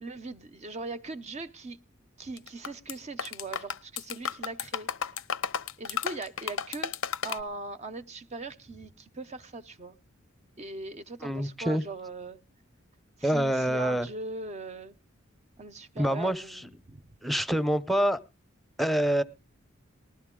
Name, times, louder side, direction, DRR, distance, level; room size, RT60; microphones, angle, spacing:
voice 1, 0.0-1.8 2.2-4.9 5.8-6.9 7.2-10.0 10.6-12.4 13.2-15.0 15.6-17.0, right 3 dB, 35° right, 0.6 m, -40 dB
sound 1, 2.4-2.9 3.2-7.4, left 7 dB, 90° left, 0.9 m, -32 dB
voice 2, 11.2-11.8 13.2-14.1 16.0-16.7 17.2-18.2 18.8-19.2, right 1 dB, ahead, 0.7 m, -26 dB
19.5 x 13.0 x 3.7 m
head